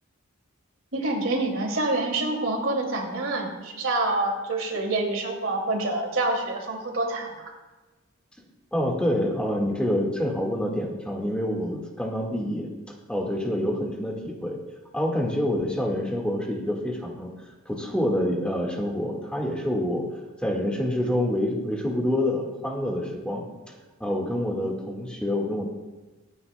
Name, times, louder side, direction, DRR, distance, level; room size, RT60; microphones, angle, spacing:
voice 1, 0.9-7.5, right 2 dB, 70° right, 1 dB, 2.5 m, -27 dB
voice 2, 8.7-12.7 13.1-14.6 14.9-17.3 17.6-20.0 20.4-23.7 24.0-25.7, left 1 dB, 5° left, -1 dB, 1.7 m, -27 dB
24.5 x 9.8 x 2.2 m, 1.2 s
head